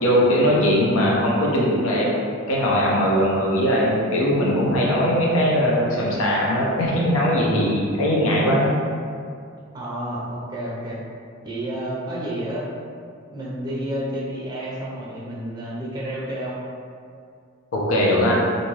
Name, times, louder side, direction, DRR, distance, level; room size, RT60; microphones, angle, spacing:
voice 1, 0.0-2.1 2.5-8.7 17.7-18.3, equal, 75° left, -4 dB, 0.5 m, -20 dB
voice 2, 9.7-11.0 11.4-12.7 13.3-16.6, right 1 dB, 20° right, -6 dB, 0.6 m, -30 dB
2.6 x 2.2 x 3.1 m, 2.3 s
head